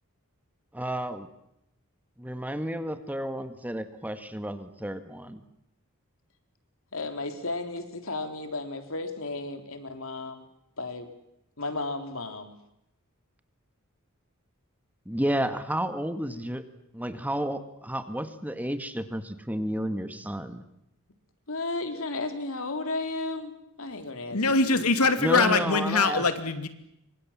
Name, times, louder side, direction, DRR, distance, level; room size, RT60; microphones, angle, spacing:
voice 1, 0.7-1.3 2.2-5.4 15.1-16.6 16.9-20.6 25.2-26.2, right 1 dB, 5° right, 9 dB, 1.8 m, -31 dB
voice 2, 6.9-10.4 10.8-11.1 11.6-12.6 21.5-25.6, left 2 dB, 65° left, 7 dB, 3.8 m, -34 dB
voice 3, 24.3-26.7, left 3 dB, 85° left, 9 dB, 2.8 m, -23 dB
29.0 x 25.5 x 7.5 m, 0.81 s
head